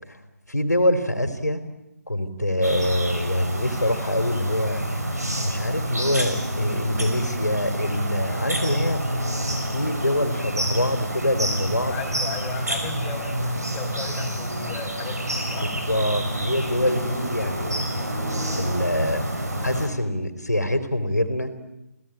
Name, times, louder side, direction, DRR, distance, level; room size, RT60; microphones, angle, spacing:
voice 1, 0.5-1.6 2.1-4.8 5.4-9.0 9.7-12.0 15.6-17.9 18.5-19.3 19.6-21.5, left 1 dB, 85° left, 8 dB, 3.4 m, -24 dB
sound 1, 2.6-19.9, right 1 dB, 75° right, 6.3 m, -28 dB
voice 2, 11.9-15.7, left 5 dB, 10° left, -2 dB, 3.7 m, -36 dB
29.0 x 17.0 x 9.0 m, 0.94 s
figure-of-eight pair, 150°, 9 cm